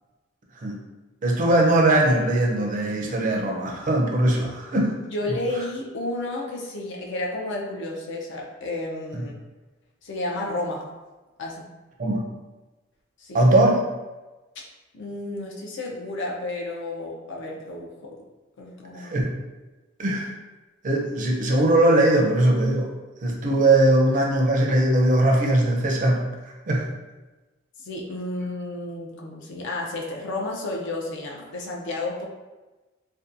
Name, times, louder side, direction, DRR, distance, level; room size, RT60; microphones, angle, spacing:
voice 1, 1.2-5.0 9.1-9.2 12.0-12.2 13.3-13.8 19.0-19.3 20.0-20.3 20.8-22.9 23.2-26.3 26.7-26.9, right 1 dB, 40° right, 0 dB, 0.4 m, -20 dB
voice 2, 5.1-9.3 10.0-10.9 11.4-11.6 13.2-13.4 14.9-18.1 18.6-19.3 27.8-32.2, left 2 dB, 60° left, -1 dB, 0.5 m, -31 dB
2.6 x 2.2 x 2.4 m, 1.2 s
head